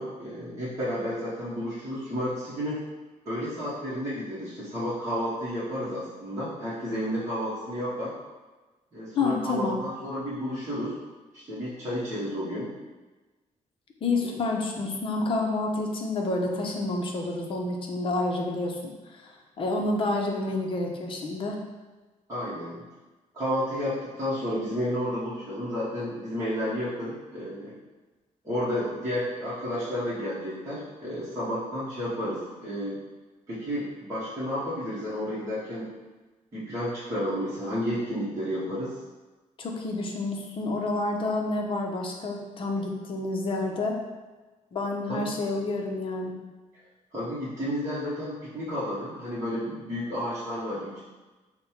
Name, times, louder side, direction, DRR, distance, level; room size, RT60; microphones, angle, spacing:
voice 1, 0.0-2.8 3.2-8.1 8.9-11.0 11.3-12.7 14.2-14.4 22.3-22.8 23.3-27.7 28.4-33.0 33.5-35.9 36.5-38.9 45.1-45.3 47.1-51.0, equal, 20° right, -11 dB, 1.0 m, -31 dB
voice 2, 9.2-9.8 14.0-19.3 19.6-21.6 39.6-44.0 44.7-46.3, left 2 dB, 40° left, 1 dB, 0.7 m, -29 dB
5.2 x 2.2 x 4.4 m, 1.2 s
cardioid pair, 160°, 14 cm